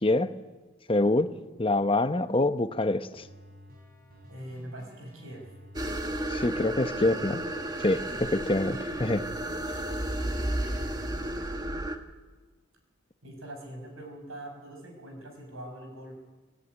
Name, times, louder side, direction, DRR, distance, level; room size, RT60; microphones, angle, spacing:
voice 1, 0.0-0.3 0.9-1.3 1.6-3.2 6.3-7.4 7.8-9.2, left 2 dB, 25° left, 10 dB, 0.8 m, -25 dB
sound 1, 3.2-11.9, right 1 dB, 45° right, 5.4 m, -53 dB
voice 2, 4.3-5.4 8.1-8.3 13.2-16.1, right 1 dB, 85° right, 3 dB, 6.9 m, -43 dB
sound 2, 5.8-12.0, right 1 dB, 20° right, 1.5 m, -32 dB
24.0 x 16.5 x 9.8 m, 1.3 s
head